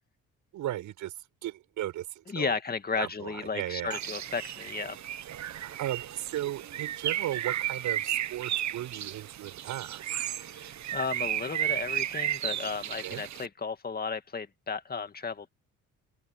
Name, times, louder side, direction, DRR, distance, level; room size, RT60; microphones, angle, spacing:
voice 1, 0.5-1.1 1.4-2.5 3.0-4.0 5.6-10.3 13.0-13.2, right 13 dB, 85° right, 6.5 m, -36 dB
voice 2, 2.3-5.0 10.4-15.5, left 5 dB, 30° left, 2.2 m, -34 dB
Bird, 3.9-13.5, right 12 dB, 65° right, 1.3 m, -34 dB
open air
cardioid pair, 90°, 30 cm